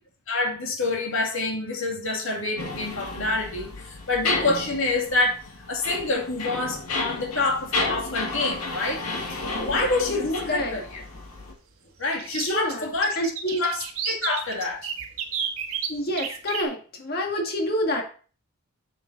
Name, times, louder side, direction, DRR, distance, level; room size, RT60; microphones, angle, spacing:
voice 1, 0.3-5.4 5.7-9.0 9.3-10.8 12.0-13.2 13.6-14.9, left 2 dB, 60° left, 0 dB, 2.3 m, -27 dB
sound 1, 2.6-11.5, left 3 dB, 90° left, 1.8 m, -32 dB
sound 2, 7.3-7.6 9.2-9.3 9.7-9.8 12.1-16.6, right 8 dB, 75° right, 1.4 m, -31 dB
voice 2, 12.3-13.6 15.9-18.0, equal, 45° left, 2 dB, 1.8 m, -28 dB
7.1 x 6.9 x 3.9 m, 0.39 s
head